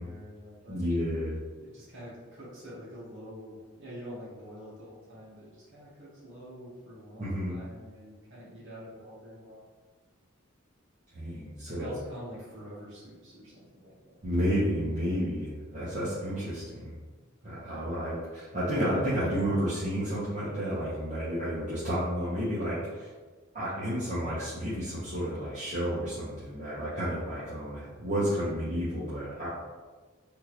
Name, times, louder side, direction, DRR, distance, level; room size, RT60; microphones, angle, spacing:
voice 1, 0.0-0.8 1.6-9.7 11.7-14.2, equal, 65° right, -8 dB, 1.0 m, -46 dB
voice 2, 0.7-1.4 7.2-7.6 11.1-11.9 14.2-16.9 17.4-23.1 23.5-29.5, equal, 40° right, -11 dB, 0.8 m, -31 dB
3.6 x 2.4 x 2.9 m, 1.4 s
head